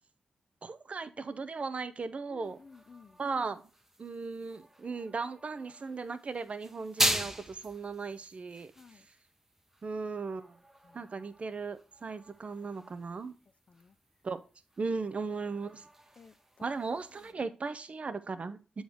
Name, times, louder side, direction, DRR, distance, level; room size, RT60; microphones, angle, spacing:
voice 1, 0.6-2.6 3.2-3.6 4.0-8.7 9.8-10.6 10.9-13.3 14.2-14.4 14.8-15.9 16.6-18.8, right 4 dB, 50° right, 0.8 m, -37 dB
voice 2, 2.3-3.2 8.8-9.1 10.8-11.1 13.7-14.0 16.2-16.8 17.7-17.8, left 5 dB, 50° left, 0.4 m, -55 dB
sound 1, 2.4-17.3, right 1 dB, 15° right, 0.9 m, -40 dB
7.8 x 4.0 x 4.8 m
cardioid pair, 60°, 3 cm